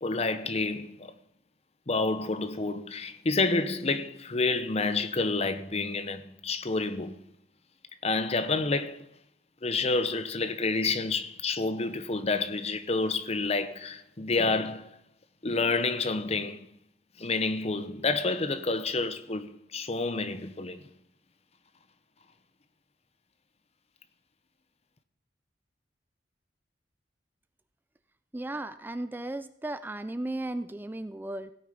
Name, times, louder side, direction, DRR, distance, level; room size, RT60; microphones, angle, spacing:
voice 1, 0.0-1.1 1.9-7.2 8.0-9.0 9.6-15.0 15.4-16.7 17.2-20.8, left 3 dB, 35° left, 0.8 m, -29 dB
voice 2, 28.3-31.5, right 1 dB, 10° right, 0.4 m, -35 dB
16.5 x 8.7 x 5.1 m
head